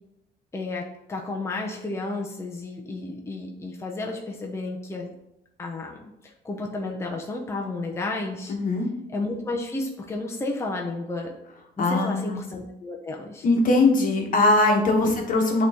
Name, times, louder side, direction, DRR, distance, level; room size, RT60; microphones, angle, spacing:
voice 1, 0.5-5.1 5.6-8.5 9.1-11.3 11.8-13.5 15.0-15.1, left 2 dB, 15° left, 0 dB, 0.8 m, -32 dB
voice 2, 8.5-8.9 11.8-12.4 13.4-15.7, left 2 dB, 50° left, 2 dB, 1.3 m, -21 dB
8.6 x 3.1 x 3.6 m, 0.86 s
cardioid pair, 110°, 17 cm